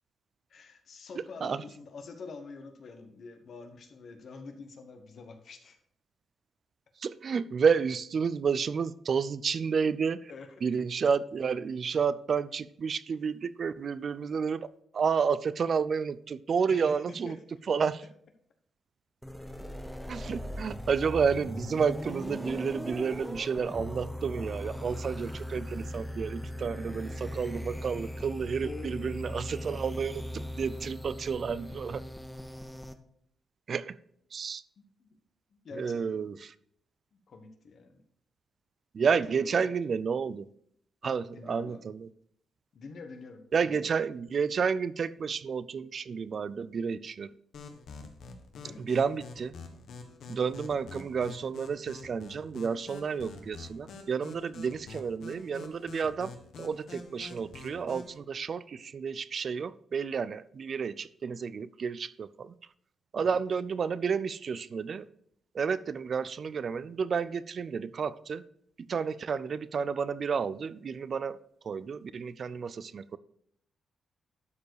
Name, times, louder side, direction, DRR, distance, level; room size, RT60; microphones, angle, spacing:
voice 1, 0.5-5.8 10.3-10.6 16.7-17.4 28.6-29.2 35.0-35.1 35.5-36.2 37.1-38.0 39.3-39.7 41.0-41.9 42.7-44.0 48.6-48.9 63.1-63.4, left 4 dB, 50° left, 6 dB, 1.1 m, -46 dB
voice 2, 7.0-10.3 10.6-14.7 14.9-17.4 17.7-18.0 20.1-32.0 33.7-34.0 34.3-34.6 35.8-36.4 38.9-40.5 41.0-42.1 43.5-47.3 48.8-49.5 50.3-56.3 56.6-62.5 63.1-65.1 65.5-68.4 68.9-71.4 71.6-73.2, right 6 dB, 45° right, 17 dB, 0.4 m, -31 dB
sound 1, 19.2-32.9, left 1 dB, ahead, 0.6 m, -39 dB
sound 2, 47.5-58.2, left 4 dB, 70° left, 1.3 m, -46 dB
12.0 x 4.7 x 4.7 m, 0.67 s
cardioid pair, 145°, 0 cm